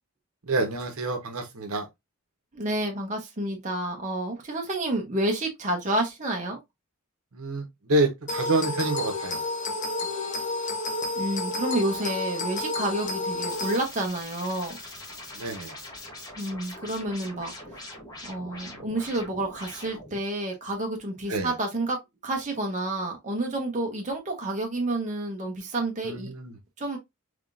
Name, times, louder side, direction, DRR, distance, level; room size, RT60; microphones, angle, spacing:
voice 1, 0.5-1.9 7.3-9.4 15.3-15.8 18.5-18.9 21.3-21.5 26.0-26.6, right 2 dB, 70° right, 0.9 m, -28 dB
voice 2, 2.5-6.6 11.1-14.8 16.4-17.9 18.2-22.0 22.2-26.3 26.8-27.0, right 1 dB, 35° right, 0.9 m, -29 dB
sound 1, 8.3-13.8, left 2 dB, 35° left, 0.8 m, -30 dB
sound 2, 13.5-20.2, left 1 dB, 15° left, 1.1 m, -42 dB
3.6 x 3.4 x 2.5 m
head